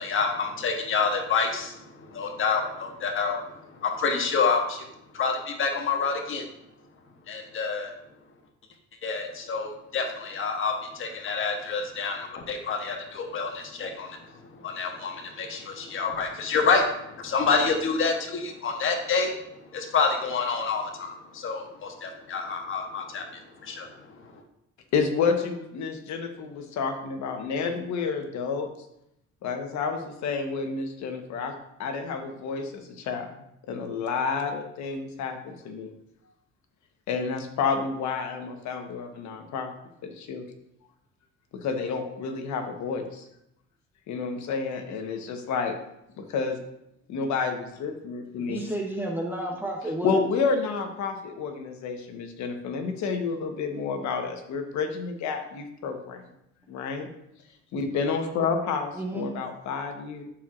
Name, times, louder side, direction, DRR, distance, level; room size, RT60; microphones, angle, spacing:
voice 1, 0.0-3.4 3.8-4.8 5.1-6.5 7.3-7.9 9.0-14.2 14.6-19.3 19.7-24.4, left 5 dB, 45° left, 3 dB, 1.1 m, -28 dB
voice 2, 24.9-28.7 29.4-31.5 31.8-33.3 33.7-35.9 37.1-39.7 40.0-40.4 41.5-43.2 44.1-45.7 46.2-46.6 47.1-48.6 50.0-56.2 56.7-57.1 57.7-60.2, left 5 dB, 70° left, 5 dB, 1.2 m, -30 dB
voice 3, 48.5-50.2 58.9-59.3, right 1 dB, 5° right, 1 dB, 0.8 m, -31 dB
11.5 x 4.5 x 2.5 m, 0.79 s
cardioid pair, 95°, 30 cm